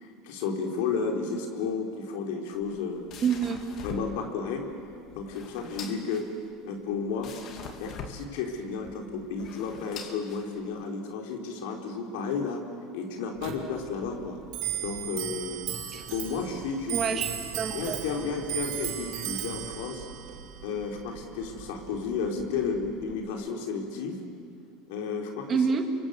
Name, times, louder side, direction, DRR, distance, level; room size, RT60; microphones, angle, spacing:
voice 1, 0.0-3.1 3.8-4.7 5.1-6.3 6.6-7.3 7.8-12.6 12.9-14.4 14.8-15.6 16.1-17.2 17.7-20.0 20.6-24.2 24.9-25.6, left 5 dB, 75° left, 3 dB, 3.9 m, -32 dB
sound 1, 2.5-10.9, left 6 dB, 50° left, 2.9 m, -44 dB
voice 2, 3.2-3.6 15.9-16.0 16.9-18.3 25.5-25.8, right 6 dB, 35° right, 5 dB, 2.8 m, -28 dB
Clock, 13.4-23.3, right 11 dB, 70° right, 3.0 m, -37 dB
29.0 x 24.5 x 8.1 m, 2.3 s
supercardioid pair, 110°, 0 cm